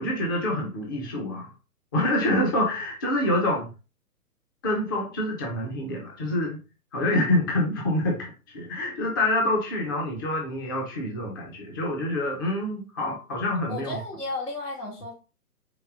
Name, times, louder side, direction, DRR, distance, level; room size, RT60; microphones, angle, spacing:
voice 1, 0.0-1.5 1.9-3.7 4.6-6.6 6.9-14.0, left 1 dB, 15° left, -1 dB, 0.5 m, -26 dB
voice 2, 13.7-15.1, left 2 dB, 90° left, -2 dB, 2.0 m, -33 dB
4.7 x 2.2 x 3.7 m, 0.32 s
figure-of-eight pair, 130°, 46 cm